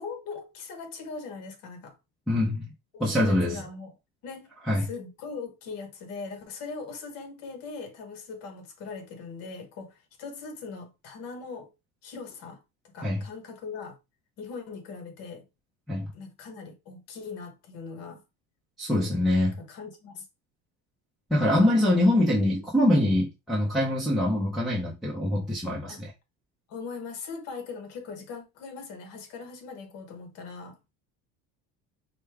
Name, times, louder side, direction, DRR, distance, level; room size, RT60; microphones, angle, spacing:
voice 1, 0.0-2.0 2.9-3.9 4.2-11.7 12.0-12.6 12.9-14.0 14.4-15.4 16.1-18.2 19.6-20.2 25.9-26.0 26.7-30.9, left 4 dB, 50° left, 1.1 m, -40 dB
voice 2, 2.3-2.7 3.0-3.6 4.7-4.8 13.0-13.2 15.9-16.1 18.8-19.5 21.3-26.1, left 1 dB, ahead, 0.8 m, -24 dB
5.1 x 2.3 x 3.4 m
cardioid pair, 170°, 32 cm